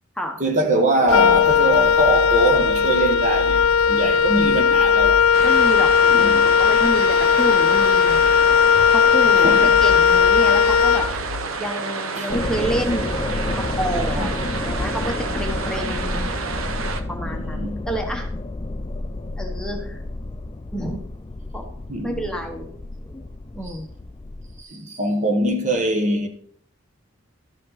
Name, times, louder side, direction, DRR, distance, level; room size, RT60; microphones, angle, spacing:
voice 1, 0.4-5.2 6.1-6.5 9.4-9.8 12.2-12.3 14.2-14.3 17.2-17.9 21.9-22.2 24.6-26.3, right 1 dB, 35° right, 1.0 m, -22 dB
Wind instrument woodwind instrument, 1.1-11.5, left 7 dB, 85° left, 0.5 m, -17 dB
sound 1, 5.3-17.0, right 4 dB, 80° right, 0.8 m, -30 dB
voice 2, 5.4-8.2 8.9-11.1 11.6-13.2 13.5-14.3 14.6-16.3 17.1-18.3 19.4-20.0 20.7-21.0 21.5-21.7 22.0-22.7 23.0-23.9, equal, 5° left, 0.9 m, -29 dB
sound 2, 12.3-24.6, left 2 dB, 20° left, 0.4 m, -30 dB
12.5 x 5.3 x 4.0 m
head